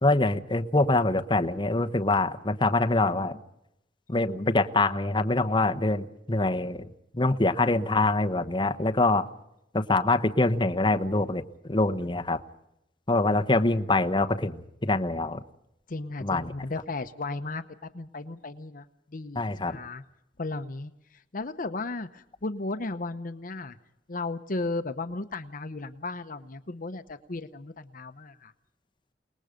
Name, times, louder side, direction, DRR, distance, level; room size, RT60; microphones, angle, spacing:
voice 1, 0.0-3.4 4.1-6.9 7.1-9.3 9.7-12.4 13.1-15.4 16.2-16.5 19.4-19.8, left 2 dB, 25° left, 6 dB, 1.0 m, -25 dB
voice 2, 15.9-20.0 20.4-23.8 24.1-28.5, left 3 dB, 50° left, 9 dB, 0.9 m, -35 dB
29.0 x 19.5 x 5.2 m, 0.83 s
head